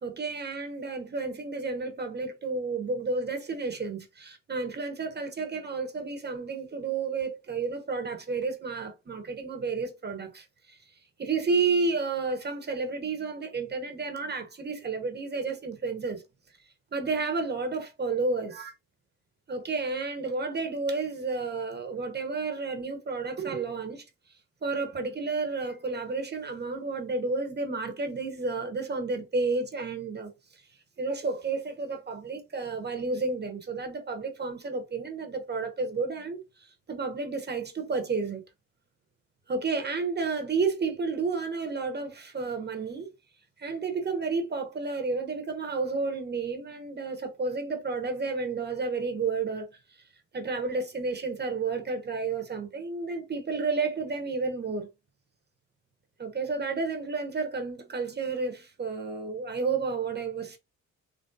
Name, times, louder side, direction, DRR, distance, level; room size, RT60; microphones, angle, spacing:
voice 1, 0.0-10.8 11.2-16.2 16.9-18.7 19.5-24.0 24.6-30.3 31.0-38.4 39.5-43.1 43.6-49.7 50.3-54.9 56.2-60.6, right 4 dB, 35° right, 1.0 m, -31 dB
4.0 x 3.2 x 2.4 m
cardioid pair, 90°, 30 cm